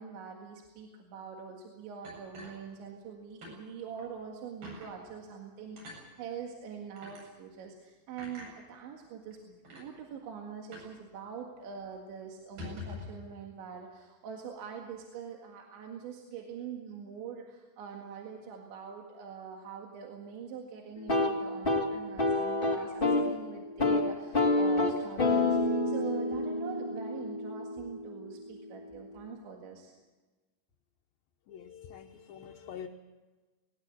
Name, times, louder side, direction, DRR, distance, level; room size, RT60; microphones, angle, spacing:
voice 1, 0.0-30.0, right 7 dB, 85° right, 1 dB, 4.3 m, -44 dB
sound 1, 2.0-3.1 3.4-3.6 4.0-4.1 4.6-4.9 5.8-6.0 7.0-7.2 8.2-8.5 9.3-9.4 9.6-9.9 10.7-11.0 11.2-11.3 11.7-11.9 12.4-13.2, left 3 dB, 55° right, 9.4 m, -45 dB
sound 2, 21.0-23.3 23.6-24.0 24.3-28.2, left 2 dB, 50° left, 0.6 m, -28 dB
voice 2, 31.5-32.9, left 8 dB, 70° left, 2 dB, 2.3 m, -45 dB
20.0 x 19.5 x 8.3 m, 1.2 s
omnidirectional pair, 5.2 m